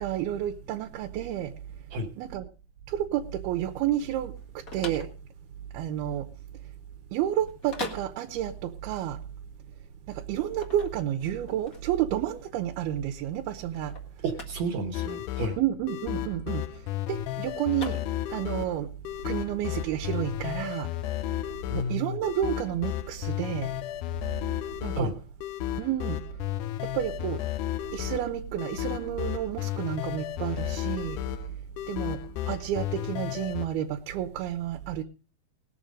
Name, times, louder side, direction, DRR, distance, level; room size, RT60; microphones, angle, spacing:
voice 1, 0.0-1.5 2.2-2.5 2.9-5.1 5.7-6.3 7.1-9.2 10.1-14.0 15.6-18.0 18.3-18.9 19.2-20.9 21.7-23.7 24.8-25.1 25.8-26.2 26.8-27.4 27.9-31.2 31.9-32.2 32.5-35.0, right 11 dB, 90° right, 2.8 m, -30 dB
sound 1, 4.3-18.6, left 4 dB, 35° left, 1.5 m, -44 dB
voice 2, 14.2-15.6 21.7-22.2 25.0-25.1, right 1 dB, 60° right, 2.1 m, -31 dB
sound 2, 14.9-33.7, left 14 dB, 80° left, 1.8 m, -33 dB
19.0 x 7.1 x 5.2 m
omnidirectional pair, 4.3 m